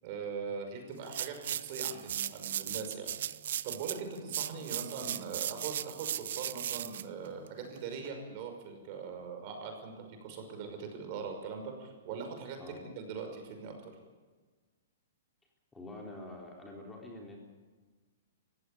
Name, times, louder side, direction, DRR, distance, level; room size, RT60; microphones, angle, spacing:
voice 1, 0.0-3.1 3.6-13.9, right 5 dB, 45° right, 4 dB, 5.7 m, -41 dB
sound 1, 1.0-8.1, right 10 dB, 65° right, 0.8 m, -37 dB
voice 2, 15.7-17.4, left 2 dB, 10° left, -1 dB, 3.9 m, -46 dB
19.5 x 16.0 x 8.6 m, 1.4 s
hypercardioid pair, 140°, 0 cm